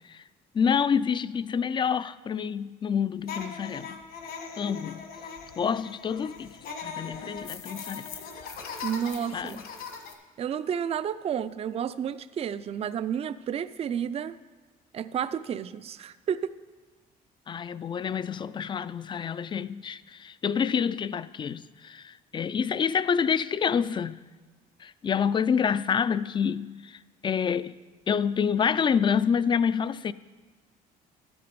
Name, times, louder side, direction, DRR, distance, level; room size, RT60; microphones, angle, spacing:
voice 1, 0.5-4.0 4.6-5.0 5.6-8.1 9.3-9.6 17.5-24.2 24.8-27.7 28.1-30.1, left 7 dB, 30° left, 0.4 m, -27 dB
sound 1, 3.2-10.1, left 5 dB, 60° left, 1.5 m, -40 dB
voice 2, 8.8-9.6 10.4-14.4 14.9-16.5, right 8 dB, 35° right, 0.4 m, -31 dB
12.0 x 8.7 x 5.2 m
cardioid pair, 110°, 17 cm